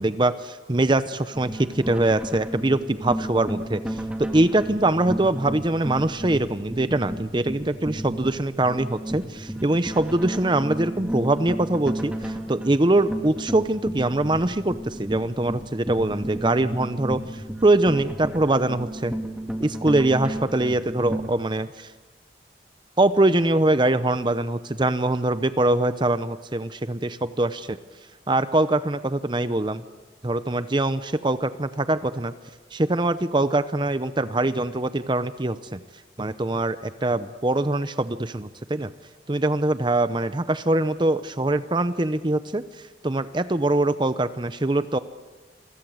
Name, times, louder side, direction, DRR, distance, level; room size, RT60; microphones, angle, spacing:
voice 1, 0.0-19.1 19.6-21.9 23.0-27.8 28.3-29.8 30.2-32.3 32.7-35.8 36.2-38.9 39.3-45.0, right 2 dB, 25° right, 12 dB, 0.8 m, -23 dB
sound 1, 1.3-21.3, right 1 dB, 5° right, 2.4 m, -33 dB
28.5 x 23.5 x 8.0 m, 1.3 s
head